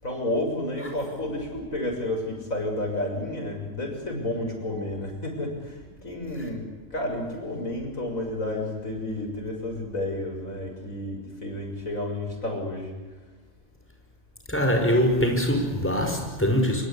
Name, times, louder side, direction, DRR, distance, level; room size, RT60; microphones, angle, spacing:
voice 1, 0.0-6.6 6.9-12.9, left 1 dB, 85° left, 2 dB, 7.3 m, -31 dB
voice 2, 14.5-16.8, equal, 10° left, 3 dB, 5.4 m, -23 dB
25.5 x 24.5 x 8.7 m, 1.3 s
omnidirectional pair, 1.4 m